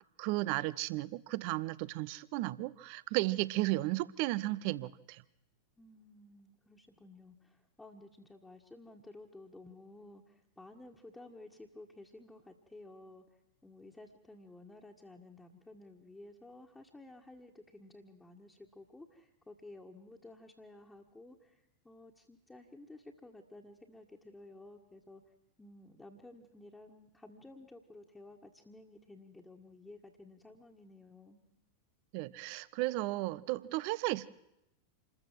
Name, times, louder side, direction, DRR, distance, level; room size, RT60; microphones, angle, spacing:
voice 1, 0.2-5.2 32.1-34.3, right 19 dB, 45° right, 0.7 m, -34 dB
voice 2, 5.8-13.2 13.6-25.2 25.6-31.4, left 2 dB, 10° left, 1.8 m, -54 dB
27.0 x 14.0 x 7.6 m
figure-of-eight pair, 90°, 0 cm